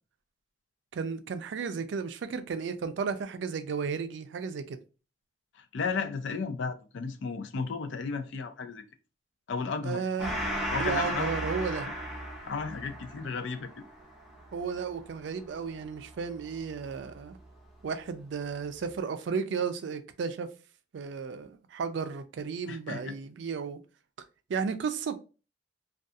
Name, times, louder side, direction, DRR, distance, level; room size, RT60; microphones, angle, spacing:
voice 1, 0.9-4.8 9.8-10.3 10.8-11.9 14.5-17.4 17.8-20.5 20.9-23.8 24.5-25.2, right 5 dB, 70° right, 0.4 m, -33 dB
voice 2, 5.5-8.8 9.5-10.0 10.7-11.3 12.5-13.8 22.7-23.2, left 5 dB, 75° left, 0.4 m, -34 dB
Gong, 10.2-17.1, equal, 5° right, 0.6 m, -36 dB
2.3 x 2.3 x 2.6 m
head